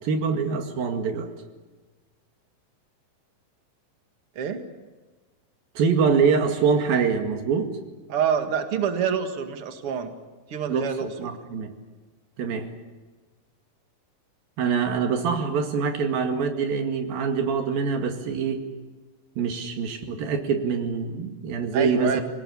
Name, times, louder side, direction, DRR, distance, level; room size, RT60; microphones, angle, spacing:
voice 1, 0.0-1.3 5.8-7.7 10.7-10.9 11.2-11.7 12.4-12.7 14.6-18.7 19.4-22.2, right 5 dB, 90° right, 5 dB, 3.9 m, -24 dB
voice 2, 8.1-10.1 10.5-11.3 21.7-22.2, right 7 dB, 45° right, 5 dB, 2.5 m, -27 dB
27.0 x 19.0 x 8.5 m, 1.3 s
omnidirectional pair, 4.0 m